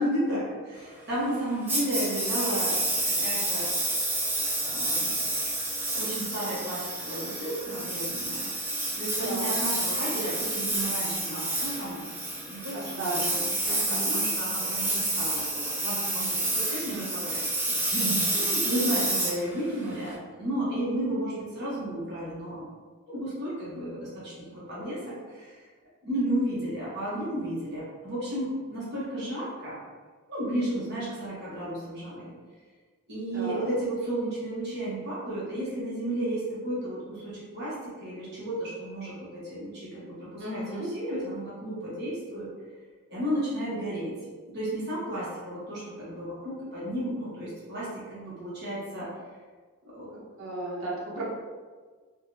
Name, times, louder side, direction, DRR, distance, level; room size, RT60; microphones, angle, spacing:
voice 1, 0.0-3.7 4.6-5.2 5.8-8.5 9.0-22.6 23.1-25.6 26.0-29.8 30.3-32.3 33.1-42.5 43.1-44.1 44.5-49.1 49.8-50.2, right 1 dB, 50° right, -8 dB, 1.0 m, -33 dB
Engine, 1.7-20.1, right 2 dB, 10° right, 0.3 m, -29 dB
voice 2, 9.2-9.5 12.7-13.4 13.7-14.1 18.3-18.9 33.3-33.6 40.4-40.9 50.4-51.2, right 1 dB, 75° right, -6 dB, 0.9 m, -35 dB
3.5 x 2.2 x 2.7 m, 1.5 s
head